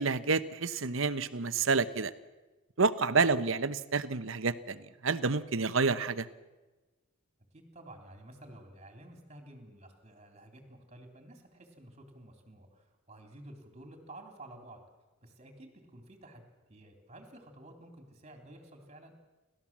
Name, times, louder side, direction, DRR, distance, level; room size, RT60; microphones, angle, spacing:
voice 1, 0.0-2.1 2.8-6.3, right 4 dB, 70° right, 13 dB, 0.9 m, -29 dB
voice 2, 7.5-14.8 15.2-19.1, right 1 dB, 30° right, 4 dB, 3.3 m, -52 dB
29.5 x 13.5 x 7.4 m, 1.2 s
head